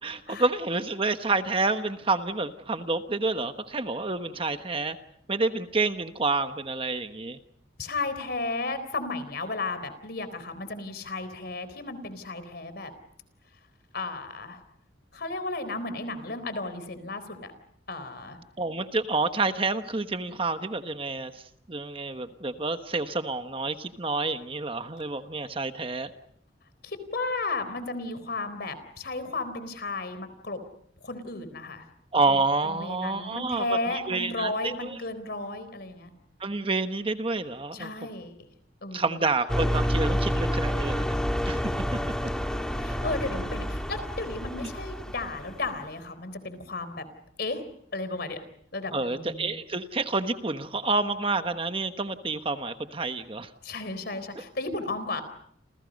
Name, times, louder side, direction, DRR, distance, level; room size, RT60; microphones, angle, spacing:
voice 1, 0.0-5.0 5.3-7.4 18.6-26.1 32.1-35.0 36.4-37.9 38.9-41.2 41.4-42.0 42.8-42.9 44.6-44.7 48.9-53.5, right 3 dB, 30° right, 8 dB, 1.2 m, -29 dB
voice 2, 7.8-12.9 13.9-14.6 15.1-17.5 17.9-18.4 26.8-30.6 31.0-31.9 32.7-36.1 37.7-38.4 38.8-39.2 42.7-47.0 47.4-47.6 47.9-48.4 48.7-49.6 53.6-55.2, left 3 dB, 55° left, 12 dB, 4.0 m, -34 dB
sound 1, 39.5-45.8, equal, 5° left, 2.1 m, -29 dB
29.0 x 29.0 x 5.3 m, 0.68 s
head